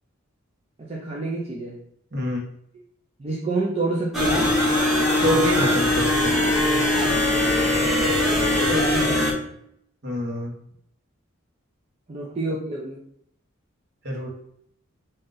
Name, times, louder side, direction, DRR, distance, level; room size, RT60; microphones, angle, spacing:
voice 1, 0.8-1.8 3.2-4.5 8.5-9.5 12.1-13.0, right 2 dB, 30° right, -3 dB, 0.5 m, -28 dB
sound 1, 4.1-9.3, left 1 dB, ahead, 0.9 m, -21 dB
voice 2, 5.2-6.3 10.0-10.5 14.0-14.3, equal, 55° right, -2 dB, 1.2 m, -26 dB
3.8 x 2.7 x 3.9 m, 0.71 s
head